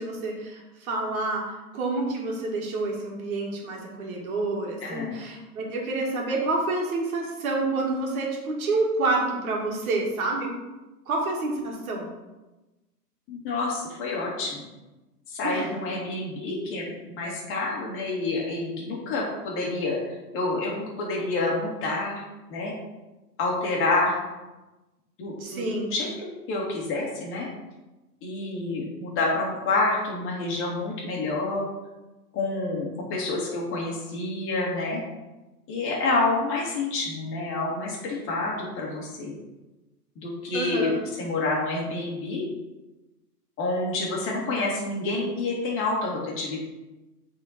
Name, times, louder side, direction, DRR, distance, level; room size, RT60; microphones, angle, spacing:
voice 1, 0.0-1.4 1.7-10.6 11.1-12.1 15.4-15.7 25.4-25.9 40.5-41.0, right 2 dB, 60° right, 0 dB, 2.4 m, -28 dB
voice 2, 4.8-5.1 13.3-14.6 15.3-22.2 22.5-22.7 23.4-24.2 25.2-25.6 25.9-26.1 26.5-27.5 28.2-31.7 32.3-35.0 35.7-39.3 40.2-40.9 41.2-42.4 43.6-46.6, left 2 dB, 25° left, -3 dB, 2.3 m, -28 dB
8.5 x 4.5 x 4.3 m, 1.1 s
hypercardioid pair, 135°, 48 cm